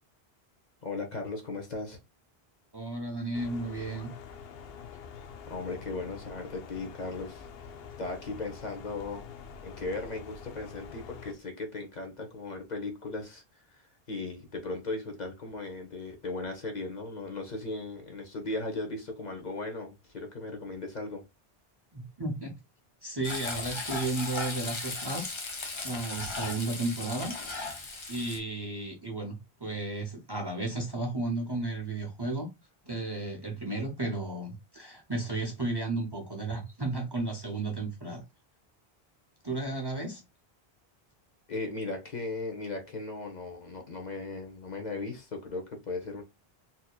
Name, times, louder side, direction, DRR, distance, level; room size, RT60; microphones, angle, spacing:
voice 1, 0.8-2.0 5.5-7.7 8.0-9.3 9.6-21.2 41.5-46.2, left 3 dB, 45° left, 0.9 m, -37 dB
voice 2, 2.7-4.1 21.9-22.6 23.0-25.4 25.8-27.4 28.1-32.5 32.8-38.2 39.4-40.2, right 2 dB, 25° right, 0.7 m, -33 dB
sound 1, 3.3-11.3, left 6 dB, 75° left, 0.8 m, -46 dB
Frying (food), 23.2-28.4, left 3 dB, 30° left, 0.8 m, -36 dB
4.1 x 2.8 x 2.3 m
omnidirectional pair, 1.0 m